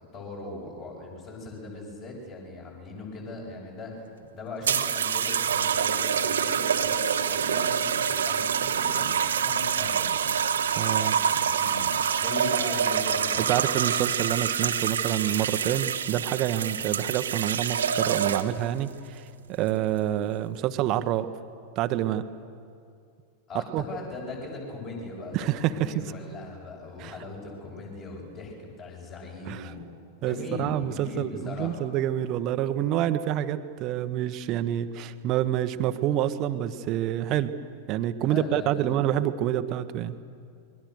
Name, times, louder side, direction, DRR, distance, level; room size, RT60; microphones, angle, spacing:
voice 1, 0.1-3.9 4.3-10.1 11.0-11.9 12.2-13.5 16.6-16.8 23.5-29.8 30.2-31.8 38.2-39.1, left 3 dB, 35° left, -2 dB, 7.4 m, -39 dB
sound 1, 4.6-18.7 19.5-19.9, right 8 dB, 65° right, 1.3 m, -26 dB
voice 2, 10.8-11.2 13.5-21.3 21.8-22.2 23.7-23.8 25.3-25.9 27.0-27.1 29.5-29.6 30.2-37.5 37.9-40.2, right 12 dB, 40° right, 11 dB, 1.3 m, -27 dB
29.0 x 22.5 x 6.7 m, 2.4 s
figure-of-eight pair, 90°, 0 cm